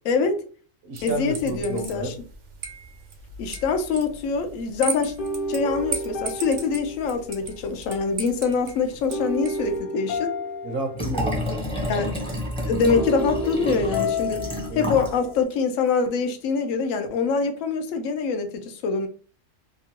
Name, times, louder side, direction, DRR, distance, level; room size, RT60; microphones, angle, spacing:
voice 1, 0.1-0.4 1.0-2.1 3.4-5.1 5.5-10.3 11.9-12.1 12.7-14.4 14.7-19.1, left 5 dB, 90° left, 1.0 m, -24 dB
voice 2, 0.8-2.1 10.6-11.7 14.7-14.9, right 2 dB, 60° right, 0.7 m, -31 dB
sound 1, 1.0-9.8, right 5 dB, 90° right, 1.0 m, -37 dB
sound 2, 5.2-7.7 9.1-11.6 12.9-15.4, left 1 dB, 60° left, 0.6 m, -31 dB
Liquid, 10.9-15.2 15.5-15.6, left 1 dB, 5° left, 0.6 m, -29 dB
2.9 x 2.3 x 2.8 m
omnidirectional pair, 1.3 m